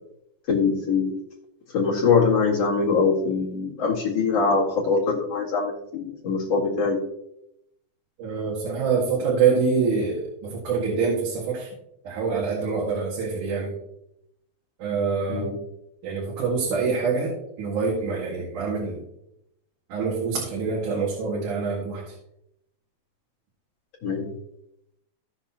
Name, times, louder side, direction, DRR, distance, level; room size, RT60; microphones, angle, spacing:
voice 1, 0.5-1.2 1.7-7.0 15.3-15.6 24.0-24.3, left 5 dB, 55° left, -5 dB, 3.0 m, -23 dB
voice 2, 8.2-11.7 12.0-13.7 14.8-15.5 16.0-19.0 19.9-22.2, right 5 dB, 80° right, -4 dB, 3.4 m, -25 dB
17.5 x 6.0 x 2.9 m, 0.81 s
omnidirectional pair, 3.5 m